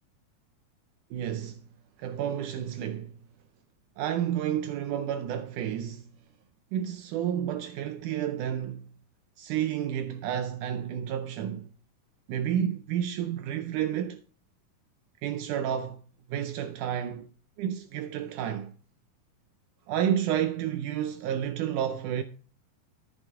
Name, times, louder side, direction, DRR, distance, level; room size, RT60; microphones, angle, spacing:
voice 1, 1.1-1.6 2.0-3.1 4.0-6.1 6.7-8.9 9.4-11.7 12.3-14.2 15.2-16.0 16.3-17.3 17.6-18.7 19.9-22.2, right 10 dB, 80° right, 1.9 m, -30 dB
14.0 x 6.6 x 3.6 m
omnidirectional pair, 3.9 m